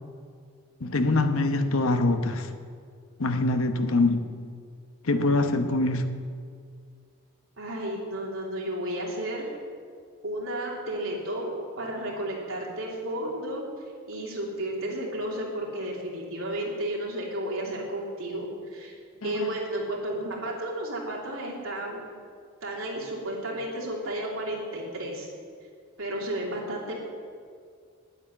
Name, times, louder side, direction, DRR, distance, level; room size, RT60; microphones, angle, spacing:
voice 1, 0.8-2.5 3.2-4.3 5.0-6.1 19.2-19.5, left 2 dB, 80° left, 8 dB, 0.9 m, -24 dB
voice 2, 7.6-9.5 10.2-13.6 14.1-18.9 19.2-22.1 22.6-25.3 26.0-27.0, right 1 dB, 80° right, -3 dB, 3.0 m, -32 dB
9.9 x 8.7 x 8.9 m, 2.2 s
head